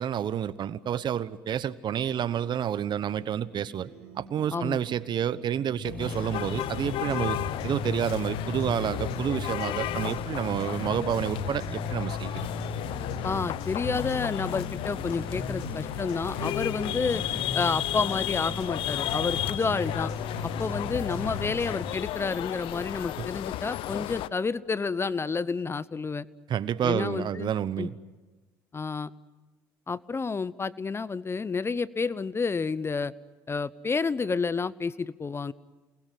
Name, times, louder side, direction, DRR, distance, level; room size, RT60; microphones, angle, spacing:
voice 1, 0.0-7.4 7.6-12.5 23.2-23.3 26.5-27.9, right 9 dB, 50° right, 16 dB, 1.1 m, -29 dB
sound 1, 2.1-10.3, right 5 dB, 85° right, 3.2 m, -47 dB
sound 2, 5.8-21.8, left 3 dB, 90° left, 5.9 m, -36 dB
sound 3, 6.0-24.3, left 14 dB, 70° left, 0.8 m, -34 dB
voice 2, 13.2-17.2 17.5-20.1 20.4-26.3 26.8-27.5 27.8-27.9 28.7-29.1 29.9-33.1 33.5-35.5, left 4 dB, 25° left, 18 dB, 0.9 m, -30 dB
29.0 x 20.5 x 9.4 m, 1.2 s
supercardioid pair, 70°, 9 cm